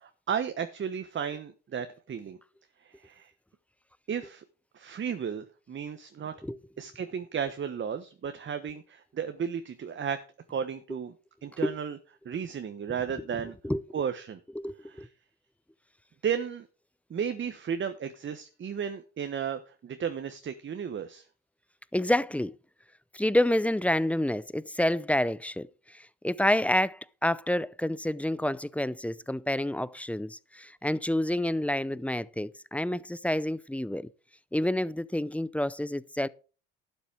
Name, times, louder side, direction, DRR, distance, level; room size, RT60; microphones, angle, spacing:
voice 1, 0.0-2.4 2.8-3.3 4.1-4.4 4.7-6.3 6.8-10.2 10.5-11.1 11.4-12.0 12.2-13.6 13.9-14.4 15.0-15.1 16.2-16.7 17.1-21.2, right 7 dB, 40° right, 1.2 m, -34 dB
voice 2, 14.6-15.1 21.9-22.5 23.1-34.1 34.5-36.3, left 1 dB, 5° left, 0.5 m, -28 dB
12.0 x 6.8 x 5.0 m
hypercardioid pair, 65°, 30 cm